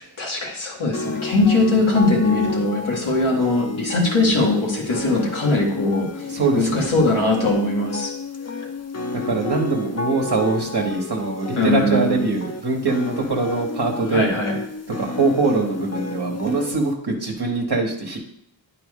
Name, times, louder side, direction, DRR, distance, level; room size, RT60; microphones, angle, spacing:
voice 1, 0.0-6.3 6.5-8.1 11.6-12.3 14.1-14.6, left 2 dB, 90° left, -2 dB, 1.9 m, -20 dB
sound 1, 0.9-16.9, left 3 dB, 35° left, 0.8 m, -32 dB
voice 2, 6.2-6.9 9.1-14.3 15.0-18.2, right 3 dB, 55° right, -1 dB, 1.2 m, -23 dB
9.5 x 4.5 x 3.6 m, 0.73 s
wide cardioid pair, 50°, 46 cm